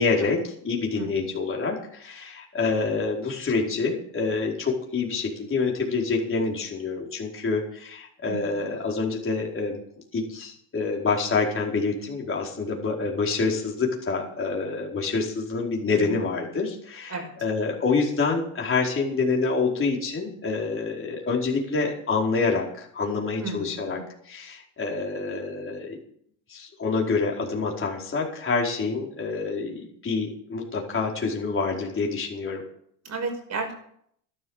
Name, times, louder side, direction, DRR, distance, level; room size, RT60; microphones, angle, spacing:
voice 1, 0.0-9.8 10.1-24.0 24.2-26.0 26.5-32.7, left 4 dB, 25° left, -1 dB, 4.8 m, -27 dB
voice 2, 23.4-24.0 33.0-33.7, right 3 dB, 35° right, 4 dB, 6.1 m, -33 dB
12.5 x 12.5 x 6.6 m, 0.67 s
supercardioid pair, 95°, 45 cm